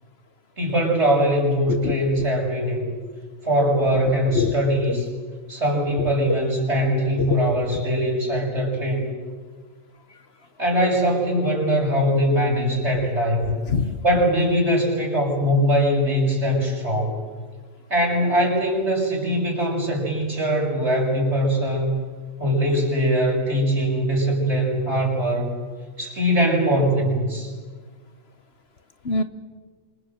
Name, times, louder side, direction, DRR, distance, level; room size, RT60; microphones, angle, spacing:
voice 1, 0.6-2.9 3.4-5.1 5.5-9.1 10.6-13.6 14.0-17.2 17.9-21.9 22.4-25.5 26.0-27.5, equal, 55° right, 0 dB, 7.1 m, -21 dB
voice 2, 13.7-14.0 29.0-29.2, left 5 dB, 50° left, 10 dB, 1.3 m, -24 dB
27.0 x 27.0 x 7.8 m, 1.5 s
omnidirectional pair, 1.4 m